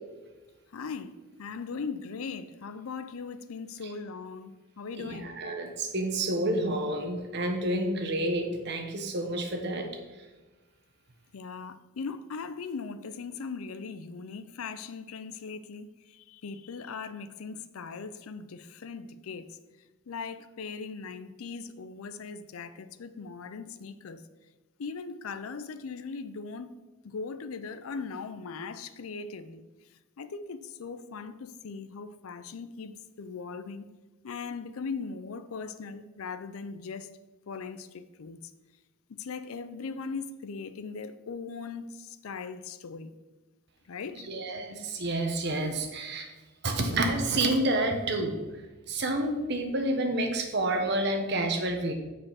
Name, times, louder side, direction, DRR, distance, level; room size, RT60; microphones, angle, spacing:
voice 1, 0.7-5.3 11.3-19.5 20.1-24.3 24.8-26.7 27.0-29.7 30.2-33.9 34.2-37.1 37.5-38.4 39.1-43.2 43.9-44.3, left 5 dB, 85° left, 0.5 m, -39 dB
voice 2, 5.0-9.9 44.3-46.3 46.6-48.4 48.9-51.9, right 1 dB, 55° right, 1.0 m, -29 dB
6.5 x 5.1 x 5.7 m
head